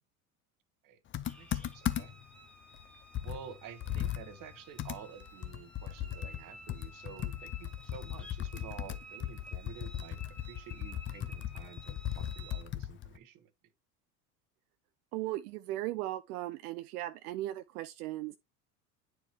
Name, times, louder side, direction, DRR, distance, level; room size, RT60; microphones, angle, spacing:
Computer keyboard, 1.1-2.3 2.7-2.8 3.1-6.4 6.7-13.2, left 11 dB, 25° left, 0.6 m, -37 dB
sound 1, 1.2-12.6, right 1 dB, ahead, 1.5 m, -54 dB
voice 1, 1.3-2.2 3.2-10.2 10.5-13.5, right 8 dB, 45° right, 1.2 m, -50 dB
voice 2, 15.1-18.4, right 15 dB, 75° right, 0.6 m, -37 dB
9.1 x 4.6 x 2.8 m
hypercardioid pair, 95°, 45 cm